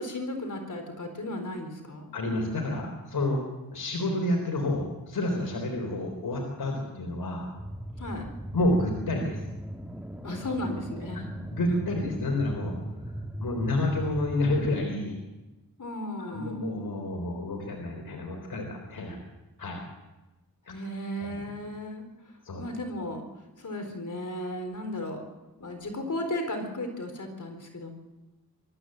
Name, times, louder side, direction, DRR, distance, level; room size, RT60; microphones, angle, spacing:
voice 1, 0.0-2.1 8.0-8.3 10.2-11.3 15.8-16.7 20.7-22.1 22.6-23.3 23.6-25.2 25.6-27.9, left 1 dB, 55° left, 5 dB, 4.2 m, -35 dB
voice 2, 2.1-3.4 3.7-7.5 8.5-9.4 11.5-12.7 13.4-15.2 16.2-19.2 19.6-19.8 21.2-21.4 22.4-22.6, left 1 dB, 75° left, 2 dB, 3.8 m, -29 dB
sound 1, 7.6-14.9, right 1 dB, 5° right, 2.0 m, -38 dB
24.5 x 13.5 x 7.8 m, 1.1 s
cardioid pair, 65°, 37 cm